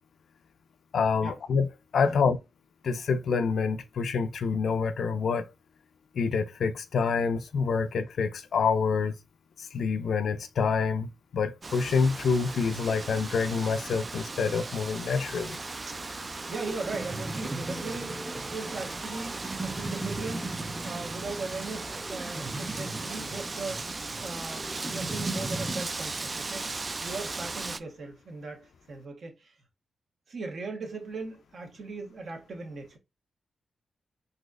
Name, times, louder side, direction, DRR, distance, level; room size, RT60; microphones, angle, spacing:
voice 1, 0.9-1.7 1.9-2.4 2.8-5.5 6.2-9.1 9.6-15.6, left 5 dB, 75° left, 0.4 m, -27 dB
Wind, 11.6-27.8, right 3 dB, 40° right, 0.3 m, -37 dB
sound 1, 15.2-25.8, right 2 dB, 15° right, 0.8 m, -38 dB
voice 2, 15.9-29.6 30.3-33.0, right 3 dB, 65° right, 1.2 m, -39 dB
4.0 x 2.8 x 2.5 m
cardioid pair, 65°, 0 cm